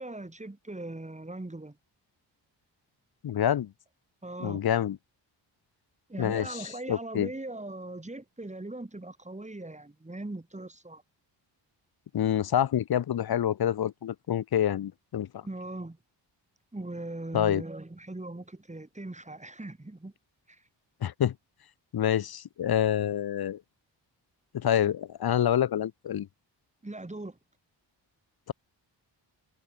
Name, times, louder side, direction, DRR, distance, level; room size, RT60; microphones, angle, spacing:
voice 1, 0.0-1.8 4.2-4.6 6.1-11.0 15.4-16.0 16.7-20.1 20.5-20.6 26.8-27.4, right 2 dB, 15° right, 4.0 m, -40 dB
voice 2, 3.2-3.7 4.4-5.0 6.2-6.6 6.9-7.3 12.1-15.4 17.3-17.6 21.0-21.3 21.9-23.6 24.5-26.3, left 10 dB, 55° left, 0.8 m, -27 dB
cardioid pair, 90°, 44 cm